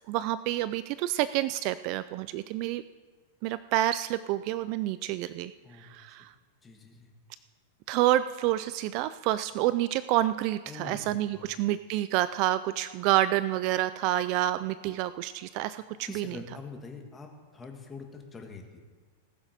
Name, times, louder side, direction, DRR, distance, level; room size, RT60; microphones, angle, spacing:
voice 1, 0.1-2.8 3.4-5.5 5.8-6.3 7.9-16.4, right 14 dB, 40° right, 15 dB, 0.3 m, -28 dB
voice 2, 5.6-6.0 6.6-7.1 10.7-11.5 15.7-18.8, left 4 dB, 15° left, 3 dB, 1.5 m, -45 dB
19.0 x 7.3 x 5.0 m, 1.4 s
supercardioid pair, 160°, 0 cm